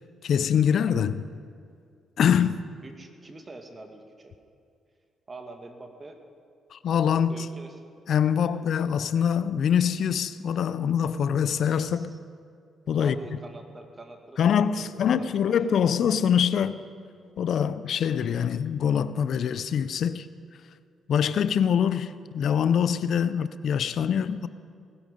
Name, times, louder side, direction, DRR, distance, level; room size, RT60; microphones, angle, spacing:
voice 1, 0.2-1.2 2.2-2.7 6.7-7.5 8.1-12.1 12.9-13.2 14.4-16.8 17.4-20.3 21.1-24.5, left 8 dB, 65° left, 0.5 m, -24 dB
voice 2, 2.8-4.3 5.3-6.2 7.3-7.8 8.4-8.8 11.9-12.2 13.0-15.4 15.7-15.9, right 2 dB, 30° right, 2.0 m, -45 dB
19.0 x 12.5 x 5.3 m
supercardioid pair, 60°, 0 cm